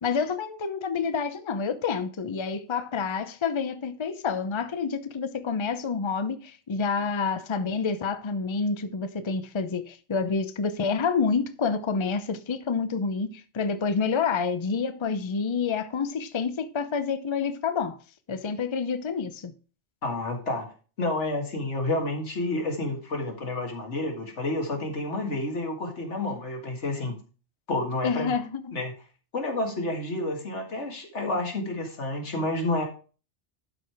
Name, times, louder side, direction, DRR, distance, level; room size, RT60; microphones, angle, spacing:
voice 1, 0.0-18.0 18.3-19.5 28.0-28.8, left 5 dB, 30° left, 0.6 m, -28 dB
voice 2, 20.0-20.7 21.0-27.2 27.7-28.3 28.7-28.9 29.3-32.9, left 2 dB, 85° left, 2.2 m, -29 dB
11.5 x 4.8 x 4.7 m
omnidirectional pair, 1.2 m